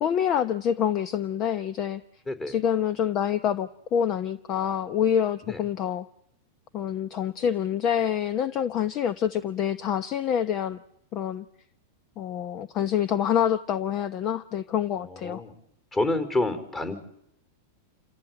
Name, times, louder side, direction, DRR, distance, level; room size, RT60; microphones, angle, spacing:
voice 1, 0.0-2.0 2.5-6.1 6.7-10.8 11.1-11.4 12.2-15.4, left 9 dB, 40° left, 13 dB, 1.0 m, -26 dB
voice 2, 2.3-2.6 5.5-5.6 15.1-15.5 15.9-17.0, left 2 dB, 20° left, 8 dB, 4.7 m, -28 dB
29.0 x 14.5 x 9.2 m, 0.76 s
hypercardioid pair, 125°, 0 cm